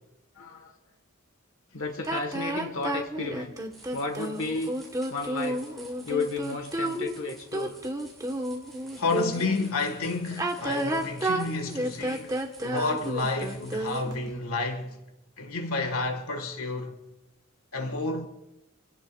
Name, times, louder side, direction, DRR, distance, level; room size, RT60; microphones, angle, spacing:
voice 1, 0.3-0.7 1.7-3.5 3.9-4.7 5.1-5.6 6.0-7.8, left 3 dB, 70° left, 1.5 m, -33 dB
sound 1, 2.0-9.6 10.3-14.3, right 1 dB, 15° right, 1.3 m, -31 dB
sound 2, 3.7-14.0, right 1 dB, ahead, 7.8 m, -52 dB
voice 2, 9.0-12.3 12.6-15.0 15.4-17.0 17.7-18.3, left 3 dB, 90° left, 1.8 m, -30 dB
28.5 x 17.5 x 2.4 m
head